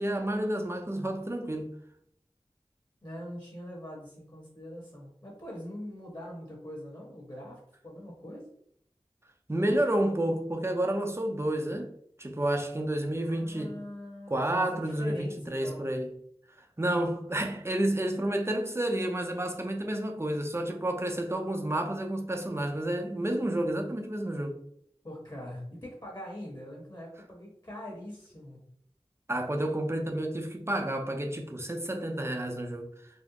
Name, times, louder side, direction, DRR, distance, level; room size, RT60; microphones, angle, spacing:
voice 1, 0.0-1.7 9.5-11.9 12.2-13.7 14.3-16.1 16.8-24.6 29.3-32.9, right 1 dB, 25° right, 0.6 m, -30 dB
voice 2, 3.0-8.5 13.2-15.9 25.0-28.6, equal, 40° left, 1.4 m, -43 dB
4.2 x 2.0 x 2.9 m
wide cardioid pair, 45°, 11 cm